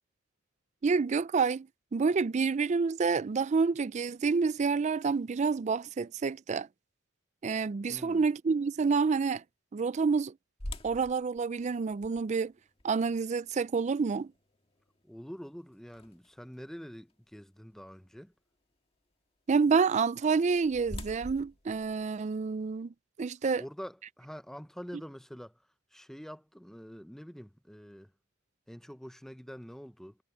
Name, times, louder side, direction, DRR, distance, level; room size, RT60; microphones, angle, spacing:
voice 1, 0.8-6.7 7.4-9.4 9.7-10.3 10.8-12.5 12.8-14.3 19.5-23.6, right 5 dB, 35° right, 0.3 m, -28 dB
voice 2, 7.9-8.2 15.0-18.3 23.6-25.6 25.9-28.1 28.7-30.2, equal, ahead, 0.8 m, -46 dB
sound 1, 10.6-16.5 17.1-17.2 17.8-18.0 20.1-22.8, left 1 dB, 30° left, 1.9 m, -46 dB
head